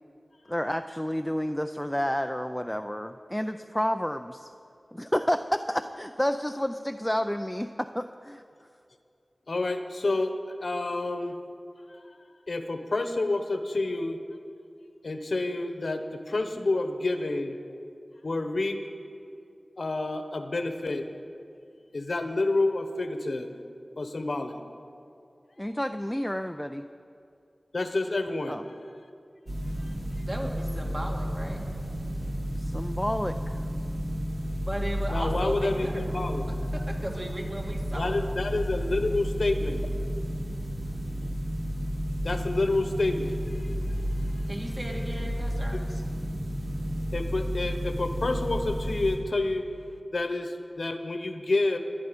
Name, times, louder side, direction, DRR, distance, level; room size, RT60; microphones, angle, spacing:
voice 1, 0.5-4.5 4.9-8.4 25.6-26.9 28.5-28.6 32.6-33.6 40.9-41.3, equal, 10° left, 8 dB, 0.4 m, -30 dB
voice 2, 9.5-10.3 10.6-11.4 12.5-14.2 15.0-17.6 18.2-18.8 19.8-21.0 21.9-23.5 24.0-24.6 27.7-28.6 35.1-36.5 38.0-39.8 42.2-43.7 45.7-45.8 47.1-49.6 50.1-51.8, left 2 dB, 70° left, 7 dB, 1.0 m, -28 dB
sound 1, 29.5-49.2, equal, 65° right, 2.7 m, -32 dB
voice 3, 30.3-31.6 34.6-36.3 36.7-38.2 44.5-46.0, right 1 dB, 30° right, -1 dB, 2.3 m, -36 dB
22.0 x 9.2 x 5.2 m, 2.5 s
wide cardioid pair, 65°, 0 cm